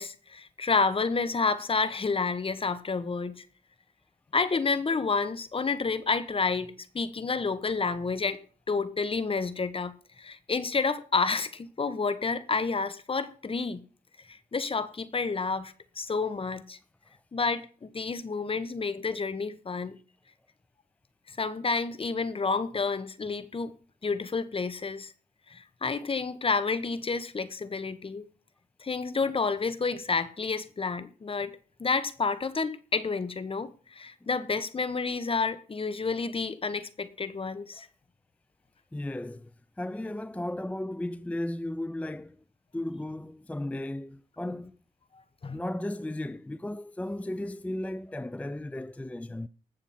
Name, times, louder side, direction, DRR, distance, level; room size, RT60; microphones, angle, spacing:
voice 1, 0.0-3.5 4.3-13.8 14.3-16.8 17.3-20.0 21.3-23.7 24.0-25.1 25.5-28.2 28.8-37.9 45.4-45.6, left 4 dB, 35° left, 1.2 m, -30 dB
voice 2, 38.9-39.5 39.8-42.4 42.7-44.8 45.5-49.5, left 1 dB, 10° left, 0.5 m, -35 dB
19.5 x 7.3 x 4.4 m
cardioid pair, 75°, 15 cm